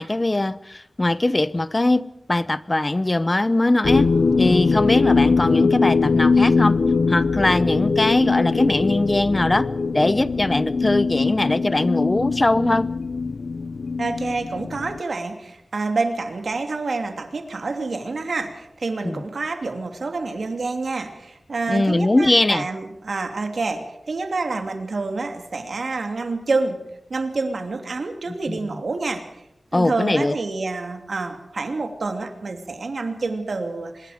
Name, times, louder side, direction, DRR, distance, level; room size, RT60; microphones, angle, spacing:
voice 1, 0.0-6.8 7.1-9.7 9.9-12.9 19.0-19.2 21.7-22.7 28.3-28.8 29.7-30.3, left 2 dB, 30° left, 17 dB, 0.8 m, -21 dB
sound 1, 3.8-15.0, left 4 dB, 80° left, 0.8 m, -21 dB
voice 2, 14.0-26.8 27.1-29.4 29.7-34.1, right 3 dB, 70° right, 6 dB, 2.8 m, -28 dB
25.5 x 21.5 x 5.2 m, 0.82 s
wide cardioid pair, 80°, 0 cm